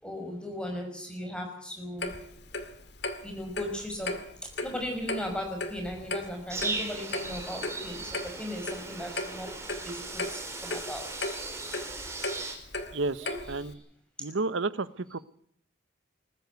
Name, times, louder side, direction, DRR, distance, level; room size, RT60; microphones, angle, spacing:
voice 1, 0.0-2.1 3.2-4.1 4.6-9.5 9.8-10.2 10.6-11.3 13.2-13.4, left 1 dB, 5° left, 3 dB, 5.7 m, -37 dB
Clock, 2.0-13.7, left 2 dB, 60° left, 2.2 m, -37 dB
sound 1, 6.5-12.5, right 3 dB, 15° right, 4.3 m, -38 dB
voice 2, 12.9-13.8 14.2-15.2, right 3 dB, 75° right, 16 dB, 0.9 m, -31 dB
20.5 x 14.5 x 9.5 m, 0.66 s
head